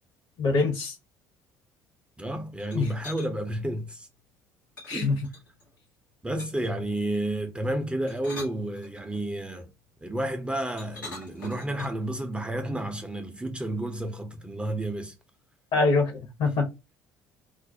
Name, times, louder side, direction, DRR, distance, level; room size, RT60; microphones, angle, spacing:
voice 1, 0.4-0.9 2.7-2.9 4.9-5.2 15.7-16.7, left 3 dB, 50° left, 0.8 m, -24 dB
voice 2, 2.2-4.1 4.9-5.2 6.2-9.7 10.0-15.1 16.5-16.6, right 1 dB, 10° right, 0.5 m, -31 dB
sound 1, 2.6-3.3 4.8-5.7 6.4-6.8 7.9-9.3 10.8-12.1, left 3 dB, 85° left, 0.8 m, -43 dB
2.3 x 2.0 x 2.6 m
figure-of-eight pair, 55°, 10 cm